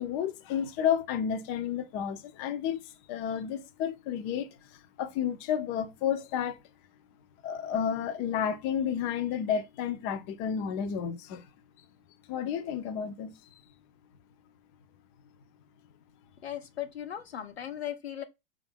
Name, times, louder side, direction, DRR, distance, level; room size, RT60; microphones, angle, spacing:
voice 1, 0.0-6.6 7.4-11.5 12.3-13.6, left 8 dB, 45° left, 0.6 m, -31 dB
voice 2, 16.4-18.2, left 10 dB, 90° left, 0.6 m, -37 dB
4.8 x 2.4 x 3.3 m
hypercardioid pair, 95°, 31 cm